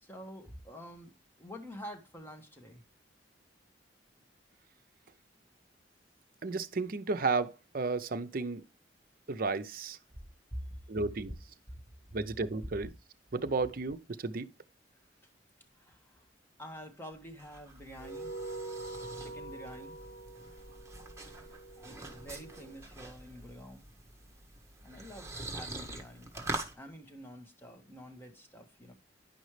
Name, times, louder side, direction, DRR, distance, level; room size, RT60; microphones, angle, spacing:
voice 1, 0.0-1.1 1.4-2.8 10.5-10.8 15.8-16.2 16.6-18.4 19.2-20.0 21.8-23.8 24.8-26.5 26.7-28.9, equal, 10° left, 1.3 m, -47 dB
voice 2, 6.4-8.6 9.3-10.0 10.9-11.3 12.1-12.9 13.3-14.5, right 3 dB, 55° right, 0.6 m, -33 dB
sound 1, 17.1-26.7, right 2 dB, 15° right, 1.4 m, -44 dB
sound 2, 18.0-22.8, right 2 dB, 35° left, 1.1 m, -45 dB
9.9 x 5.3 x 3.2 m
head